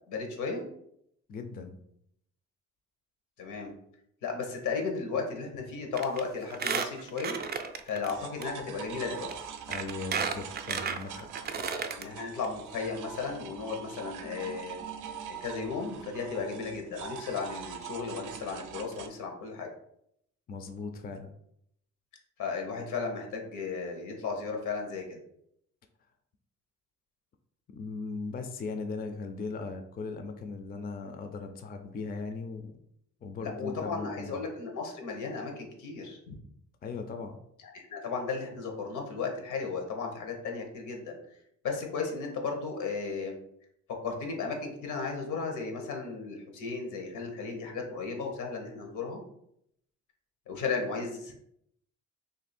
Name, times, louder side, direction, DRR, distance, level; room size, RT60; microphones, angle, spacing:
voice 1, 0.1-0.6 3.4-3.7 4.2-7.4 7.9-9.3 11.9-14.8 15.4-19.7 22.4-25.2 33.4-36.3 37.7-41.2 41.6-43.4 44.0-49.2 50.5-51.3, left 4 dB, 80° left, 2 dB, 0.9 m, -35 dB
voice 2, 1.3-1.8 9.7-11.3 20.5-21.3 27.7-32.7 33.2-34.5 36.8-37.4, left 4 dB, 30° left, 6 dB, 0.4 m, -38 dB
Squeak, 6.0-6.2 6.5-8.1 8.4-8.5 9.3-9.4 9.7-12.0 12.4-12.5 12.7-12.8, right 6 dB, 35° right, 0.4 m, -33 dB
sound 1, 8.1-19.1, right 7 dB, 85° right, 0.5 m, -43 dB
2.8 x 2.6 x 4.2 m, 0.74 s
cardioid pair, 90°, 30 cm